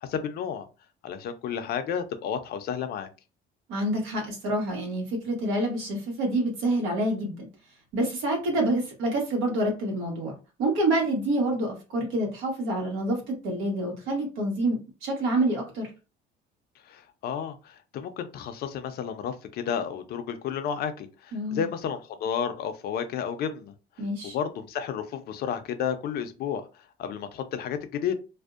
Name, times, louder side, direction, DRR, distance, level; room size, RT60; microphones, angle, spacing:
voice 1, 0.0-0.7 1.0-3.1 16.9-23.7 24.3-26.7 27.0-28.1, left 8 dB, 55° left, 0.5 m, -32 dB
voice 2, 3.7-7.5 7.9-15.9 21.3-21.7 24.0-24.4, right 1 dB, 85° right, 1.1 m, -27 dB
2.5 x 2.1 x 2.4 m
cardioid pair, 135°, 20 cm